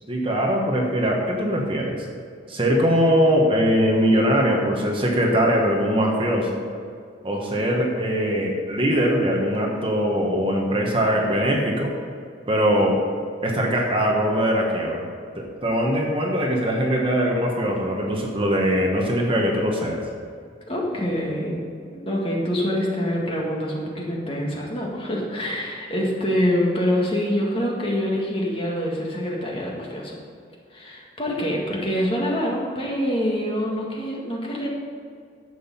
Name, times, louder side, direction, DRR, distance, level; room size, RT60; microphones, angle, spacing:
voice 1, 0.1-2.1 2.5-6.6 7.2-11.9 12.5-13.0 13.4-15.1 15.3-20.1, equal, 30° right, 0 dB, 1.3 m, -21 dB
voice 2, 20.7-21.6 22.0-30.1 30.7-34.7, equal, 30° left, -2 dB, 2.0 m, -25 dB
11.0 x 7.8 x 5.6 m, 2.3 s
head